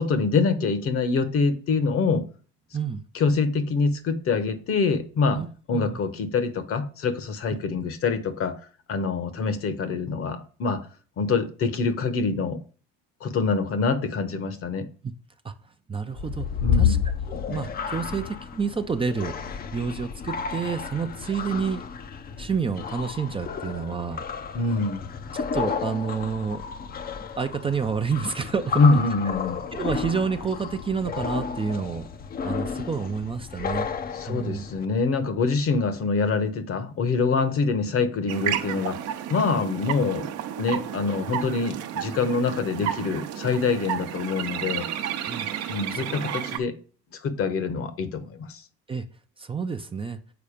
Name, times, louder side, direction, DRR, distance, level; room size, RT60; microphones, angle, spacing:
voice 1, 0.0-2.2 3.1-5.4 5.7-8.6 8.9-10.8 11.2-12.6 13.2-14.9 16.6-17.0 24.5-25.0 28.8-29.6 34.1-40.3 40.6-44.8 45.7-46.7 47.2-48.6, left 4 dB, 50° left, 1.1 m, -25 dB
voice 2, 15.9-16.5 16.7-17.0 17.3-21.8 22.4-24.3 25.3-26.6 27.4-29.0 29.7-32.1 32.4-33.9 34.3-34.6 45.3-45.5 45.9-46.1 46.5-46.6 48.9-49.0 49.4-50.2, right 5 dB, 20° right, 0.5 m, -29 dB
sound 1, 16.1-34.8, left 7 dB, 30° left, 0.6 m, -31 dB
sound 2, 38.3-46.6, right 10 dB, 60° right, 0.9 m, -32 dB
7.0 x 4.1 x 5.0 m
supercardioid pair, 85°, 30 cm